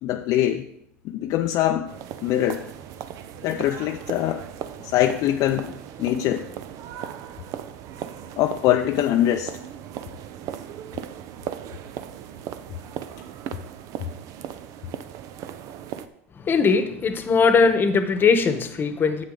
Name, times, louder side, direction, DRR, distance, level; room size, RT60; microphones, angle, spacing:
voice 1, 0.0-0.6 1.0-1.9 2.2-2.7 3.4-4.4 4.8-5.7 6.0-6.4 8.4-9.5, left 12 dB, 50° left, 5 dB, 0.6 m, -23 dB
sound 1, 1.9-16.1, right 10 dB, 50° right, 0.6 m, -37 dB
voice 2, 16.3-19.2, left 5 dB, 30° left, 9 dB, 1.1 m, -20 dB
9.8 x 7.8 x 3.9 m, 0.77 s
hypercardioid pair, 100°, 7 cm